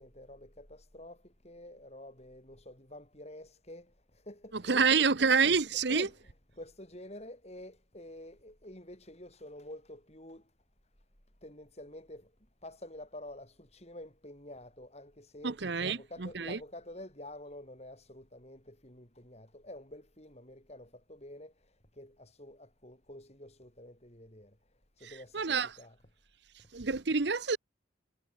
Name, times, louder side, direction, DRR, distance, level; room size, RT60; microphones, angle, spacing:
voice 1, 0.0-5.3 5.9-6.2 6.6-10.4 11.4-12.3 12.6-15.6 15.8-21.5 22.0-24.6 25.0-26.0, left 1 dB, 35° left, 7.6 m, -49 dB
voice 2, 4.5-6.1 15.4-16.6 25.3-25.7 26.7-27.6, right 5 dB, 60° right, 0.9 m, -27 dB
head